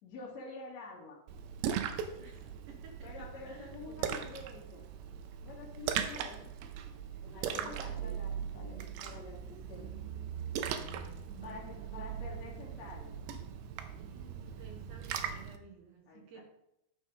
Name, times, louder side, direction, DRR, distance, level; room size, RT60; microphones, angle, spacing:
voice 1, 0.0-1.2 3.0-4.8 5.4-6.4 7.2-9.9 11.4-13.2 16.1-16.4, left 3 dB, 45° left, -4 dB, 3.0 m, -48 dB
Splash splatter, 1.3-15.6, right 8 dB, 85° right, 3.0 m, -39 dB
voice 2, 2.2-4.2 6.0-6.3 6.6-6.8 7.2-8.2 11.3-12.1 14.0-16.4, right 5 dB, 60° right, 2 dB, 2.3 m, -54 dB
12.0 x 6.4 x 5.1 m, 0.81 s
omnidirectional pair, 5.0 m